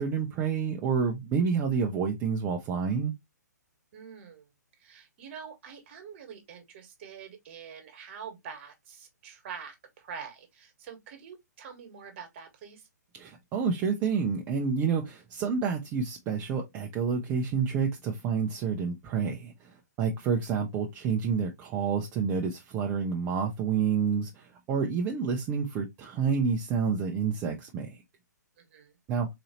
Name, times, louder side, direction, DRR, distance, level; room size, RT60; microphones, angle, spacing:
voice 1, 0.0-3.1 13.1-28.0 29.1-29.3, right 6 dB, 20° right, 0.6 m, -29 dB
voice 2, 3.9-4.5 4.8-12.9 28.6-28.9, right 6 dB, 40° right, 1.5 m, -45 dB
4.1 x 2.8 x 2.9 m
figure-of-eight pair, 125°, 10 cm